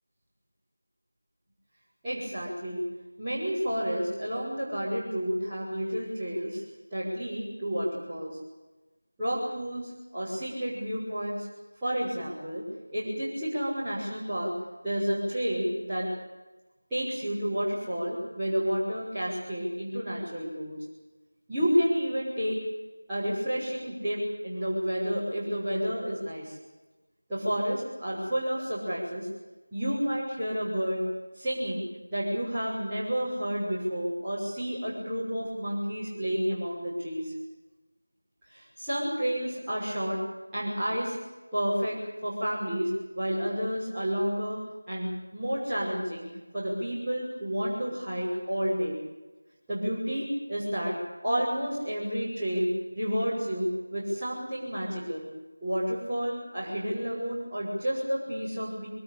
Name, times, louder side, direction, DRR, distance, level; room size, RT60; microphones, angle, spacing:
voice 1, 2.0-2.8 3.2-6.6 6.9-8.4 9.2-11.5 11.8-12.6 12.9-14.6 14.8-16.1 16.9-20.8 21.5-22.6 23.1-26.6 27.3-29.3 29.7-31.1 31.3-31.8 32.1-37.3 38.5-40.2 40.5-41.2 41.5-49.0 49.7-51.0 51.2-55.3 55.6-58.9, equal, 5° right, -17 dB, 5.8 m, -30 dB
24.0 x 19.5 x 8.7 m, 1.1 s
figure-of-eight pair, 170°, 0 cm